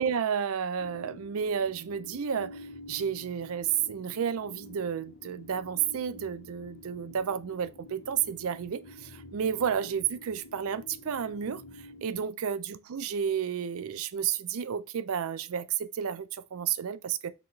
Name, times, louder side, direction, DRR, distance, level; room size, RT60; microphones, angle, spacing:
voice 1, 0.0-17.3, right 8 dB, 70° right, 0.4 m, -31 dB
sound 1, 0.8-12.3, left 2 dB, 50° left, 0.5 m, -48 dB
4.0 x 2.8 x 4.5 m
head